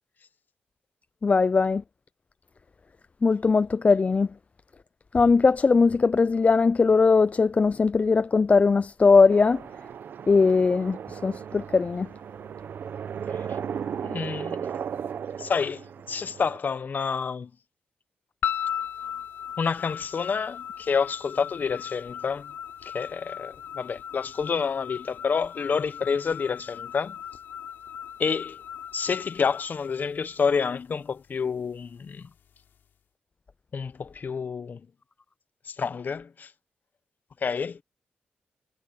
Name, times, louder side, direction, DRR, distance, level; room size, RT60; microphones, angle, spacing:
voice 1, 1.2-1.8 3.2-4.3 5.1-9.6 10.3-12.1, left 4 dB, 40° left, 0.4 m, -20 dB
sound 1, 9.3-16.6, right 7 dB, 75° right, 1.0 m, -36 dB
voice 2, 14.0-14.6 15.4-17.5 19.6-22.5 22.8-27.1 28.2-28.6 28.9-32.3 33.7-34.8 35.7-36.5 37.4-37.8, left 5 dB, 60° left, 1.2 m, -28 dB
sound 2, 18.4-30.7, left 9 dB, 80° left, 3.5 m, -37 dB
cardioid pair, 50°, 4 cm